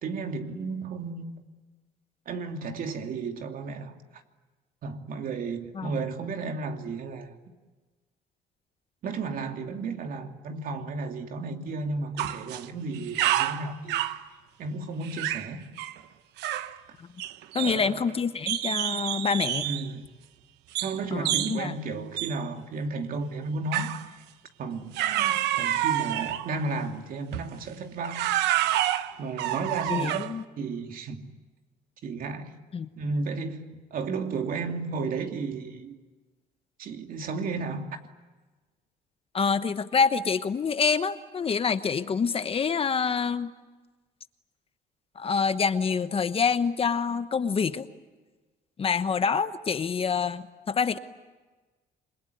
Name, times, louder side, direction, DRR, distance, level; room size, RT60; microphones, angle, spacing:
voice 1, 0.0-1.5 2.3-3.9 4.8-7.3 9.0-14.0 14.6-15.7 17.6-18.1 19.6-20.1 20.8-24.0 24.6-28.3 29.2-30.3 30.6-31.3 32.0-32.6 33.0-36.0 36.8-38.0, right 4 dB, 55° right, 2.8 m, -33 dB
sound 1, 12.2-12.7 12.9-14.2 15.0-15.5 15.8-16.0 16.4-16.8 17.2-18.1 18.5-19.9 20.8-21.0 21.3-21.6 22.2-22.4 23.7-24.1 24.9-26.5 27.3-27.5 28.0-30.4, right 13 dB, 90° right, 1.0 m, -28 dB
voice 2, 17.5-19.7 21.1-21.7 29.9-30.4 32.7-32.9 39.3-43.5 45.2-47.9 48.8-51.0, left 5 dB, 35° left, 1.1 m, -26 dB
28.0 x 22.5 x 9.4 m
cardioid pair, 110°, 17 cm